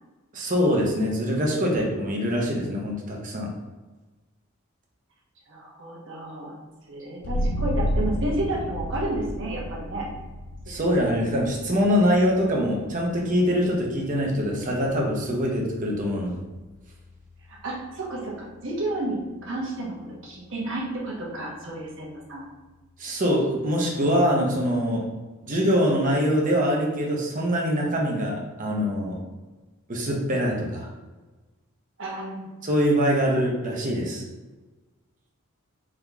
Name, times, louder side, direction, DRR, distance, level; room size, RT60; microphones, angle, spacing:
voice 1, 0.3-3.5 10.7-16.4 23.0-25.1 25.4-29.2 29.9-30.9 32.6-34.2, equal, 40° right, -1 dB, 0.8 m, -24 dB
voice 2, 5.5-6.6 6.9-10.1 10.7-11.0 17.5-20.0 20.2-22.5 32.0-32.5, right 1 dB, 60° right, -3 dB, 1.1 m, -31 dB
sound 1, 7.2-18.5, equal, 85° left, 0.5 m, -33 dB
3.7 x 3.0 x 3.4 m, 1.2 s
head